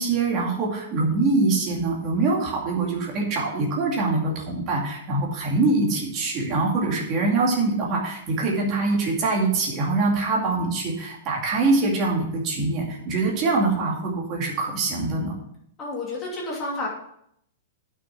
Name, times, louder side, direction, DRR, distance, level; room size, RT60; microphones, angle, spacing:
voice 1, 0.0-15.3, right 3 dB, 25° right, -2 dB, 2.4 m, -24 dB
voice 2, 15.8-16.9, left 2 dB, 15° left, -4 dB, 2.7 m, -30 dB
9.0 x 6.4 x 5.9 m, 0.71 s
supercardioid pair, 175°, 0 cm